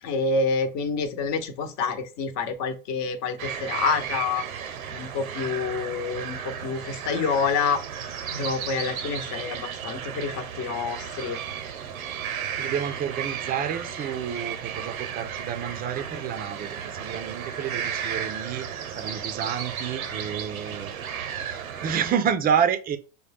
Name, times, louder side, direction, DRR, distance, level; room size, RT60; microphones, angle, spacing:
voice 1, 0.0-4.4 4.9-11.4, left 4 dB, 40° left, 1.0 m, -28 dB
sound 1, 3.4-22.1, right 8 dB, 90° right, 0.8 m, -34 dB
voice 2, 12.5-18.7 19.0-23.0, right 8 dB, 20° right, 0.5 m, -29 dB
6.3 x 2.3 x 3.5 m
supercardioid pair, 120°, 41 cm